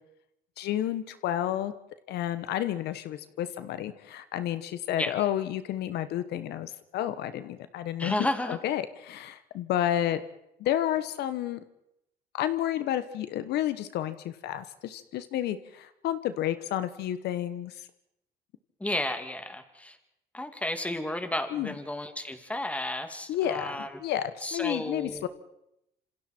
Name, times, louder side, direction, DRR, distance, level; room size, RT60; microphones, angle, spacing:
voice 1, 0.6-1.7 2.1-10.2 10.6-11.6 12.3-17.7 21.5-21.7 23.3-25.3, left 12 dB, 75° left, 12 dB, 1.2 m, -31 dB
voice 2, 8.0-8.6 18.8-20.0 20.3-23.9 24.4-25.3, left 1 dB, 10° left, 7 dB, 2.5 m, -32 dB
27.0 x 26.5 x 4.5 m, 0.84 s
cardioid pair, 110°, 17 cm